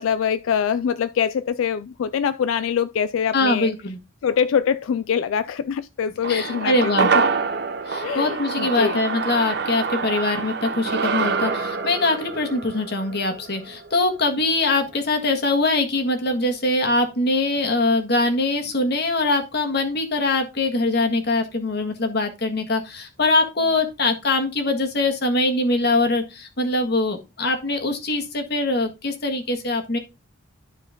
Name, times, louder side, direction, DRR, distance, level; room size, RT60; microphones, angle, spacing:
voice 1, 0.0-3.7 4.2-7.1 8.0-9.0, left 7 dB, 85° left, 0.3 m, -24 dB
voice 2, 3.3-4.0 6.3-7.1 7.8-30.0, left 2 dB, 55° left, 1.6 m, -23 dB
sound 1, 6.2-14.7 15.0-15.1, right 5 dB, 55° right, 0.9 m, -26 dB
12.0 x 4.5 x 3.7 m
head